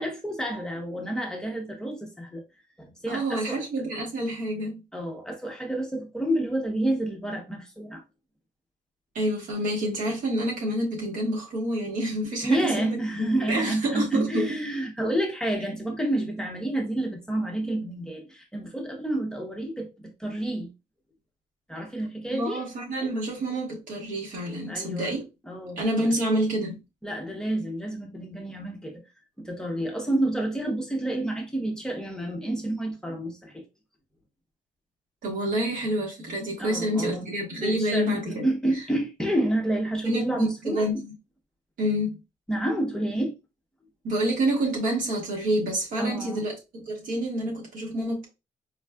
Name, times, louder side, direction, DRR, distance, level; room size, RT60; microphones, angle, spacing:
voice 1, 0.0-2.4 2.8-3.6 4.9-8.0 12.4-20.7 21.7-22.7 24.7-25.1 25.5-26.1 27.0-29.0 29.4-33.6 36.6-37.3 37.5-40.9 42.5-43.3 46.0-46.5, right 1 dB, 5° left, 0.7 m, -29 dB
voice 2, 3.1-4.8 9.1-14.6 22.3-25.2 25.8-26.8 35.2-38.5 40.0-41.1 41.8-42.2 44.0-48.3, right 1 dB, 75° right, 1.3 m, -28 dB
4.3 x 2.3 x 2.2 m
cardioid pair, 145°, 14 cm